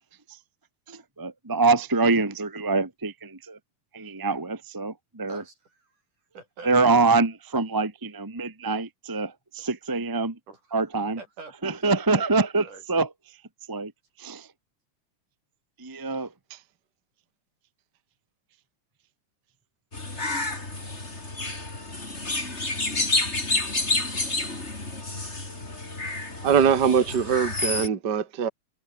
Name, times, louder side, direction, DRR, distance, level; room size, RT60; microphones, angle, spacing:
voice 1, 0.9-3.6 3.9-5.4 6.6-10.3 10.7-11.2 11.6-13.1 13.7-13.9 14.2-14.5 15.8-16.3, right 3 dB, 10° right, 1.1 m, -25 dB
voice 2, 5.3-6.0 6.3-7.0 9.6-9.7 10.5-12.2 12.6-12.8, right 4 dB, 75° right, 8.4 m, -45 dB
sound 1, 19.9-27.9, left 2 dB, 20° left, 4.4 m, -29 dB
voice 3, 26.4-28.5, right 7 dB, 40° right, 2.1 m, -22 dB
omnidirectional pair, 3.6 m